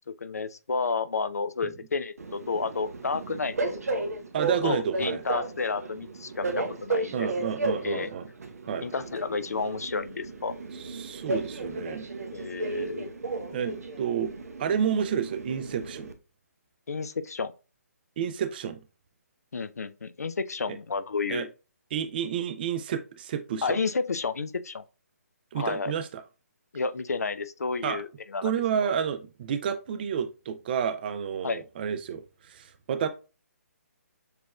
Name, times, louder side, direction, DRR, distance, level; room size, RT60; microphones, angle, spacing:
voice 1, 0.2-4.0 4.6-7.3 7.8-8.1 8.8-10.5 12.3-13.1 16.9-17.5 19.5-21.5 23.6-24.8 25.5-25.9 26.7-28.5 28.8-28.9 31.4-31.6, left 4 dB, 75° left, 0.5 m, -31 dB
Train, 2.2-16.1, right 2 dB, 70° right, 0.8 m, -34 dB
voice 2, 4.3-5.2 7.1-8.3 8.7-8.9 10.8-12.1 13.5-14.3 14.6-16.1 18.2-18.8 20.7-20.8 21.3-21.5 21.9-23.8 25.5-26.2 27.8-28.0 28.4-33.1, right 8 dB, 35° right, 0.5 m, -30 dB
6.7 x 3.0 x 2.3 m
figure-of-eight pair, 140°, 9 cm